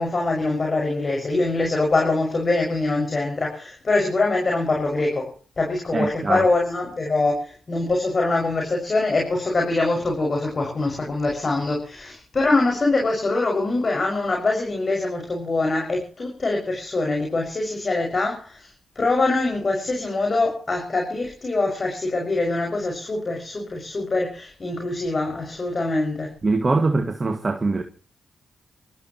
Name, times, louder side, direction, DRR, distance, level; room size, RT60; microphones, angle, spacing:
voice 1, 0.0-18.7 18.9-26.3, left 2 dB, 45° left, 6.2 m, -24 dB
voice 2, 5.9-6.5 26.4-27.8, right 3 dB, 35° right, 2.1 m, -22 dB
27.0 x 14.0 x 3.1 m
supercardioid pair, 50°, 0 cm